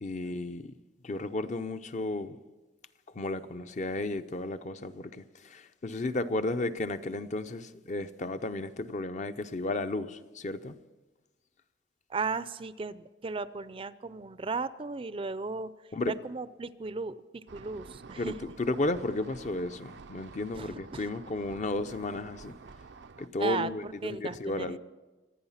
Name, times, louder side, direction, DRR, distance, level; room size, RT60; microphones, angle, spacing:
voice 1, 0.0-0.7 1.0-2.4 3.1-10.8 15.9-16.1 18.2-22.6 23.2-24.8, left 2 dB, 45° left, 0.6 m, -33 dB
voice 2, 12.1-18.4 20.5-21.1 23.4-24.8, right 4 dB, 30° right, 0.5 m, -36 dB
sound 1, 17.5-23.3, right 4 dB, 85° right, 0.6 m, -49 dB
26.0 x 9.2 x 5.7 m
head